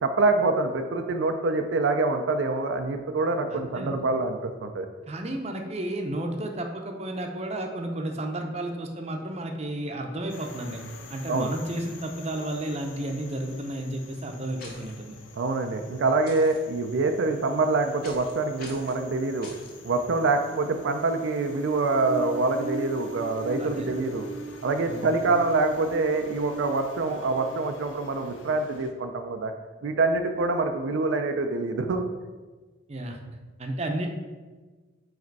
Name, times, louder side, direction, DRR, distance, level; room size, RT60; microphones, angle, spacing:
voice 1, 0.0-4.9 11.3-11.5 15.3-19.5 19.8-24.2 24.6-29.5 29.8-32.0, right 3 dB, 75° right, 6 dB, 0.4 m, -25 dB
voice 2, 3.5-4.0 5.1-10.8 11.1-15.2 23.6-23.9 24.9-25.2 32.9-33.2 33.6-34.1, right 1 dB, 35° right, 4 dB, 0.6 m, -32 dB
sound 1, 10.3-28.9, right 1 dB, 75° left, 0.7 m, -42 dB
sound 2, 14.6-14.9 16.3-16.6 18.0-18.3 18.6-19.0 19.4-19.7, left 2 dB, 50° left, 1.2 m, -44 dB
4.8 x 4.2 x 4.6 m, 1.3 s
head